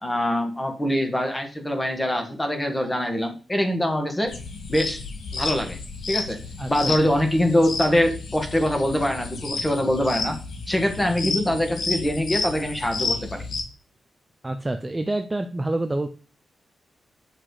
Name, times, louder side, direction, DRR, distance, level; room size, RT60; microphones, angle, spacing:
voice 1, 0.0-4.3 4.7-5.0 5.3-5.8 6.1-6.4 6.7-10.4 10.7-13.4, left 1 dB, 10° left, 5 dB, 1.5 m, -23 dB
sound 1, 4.3-13.6, left 4 dB, 65° left, 1.8 m, -31 dB
voice 2, 6.6-7.0 14.4-16.1, right 2 dB, 15° right, 7 dB, 0.5 m, -27 dB
8.2 x 5.9 x 4.8 m, 0.37 s
wide cardioid pair, 180°, 0 cm